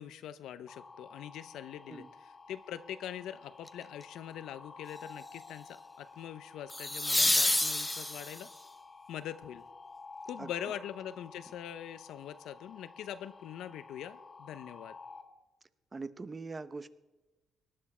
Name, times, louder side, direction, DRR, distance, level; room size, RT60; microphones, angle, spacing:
voice 1, 0.0-8.5 9.1-9.7 10.2-15.0, left 10 dB, 80° left, 13 dB, 0.7 m, -43 dB
sound 1, 0.7-15.2, left 4 dB, 35° left, 1.9 m, -52 dB
sound 2, 3.7-4.0 6.7-8.6 11.5-11.6, left 1 dB, 10° left, 0.7 m, -29 dB
voice 2, 15.9-16.9, right 3 dB, 30° right, 13 dB, 0.8 m, -42 dB
18.5 x 10.5 x 4.3 m, 1.1 s
cardioid pair, 90°, 0 cm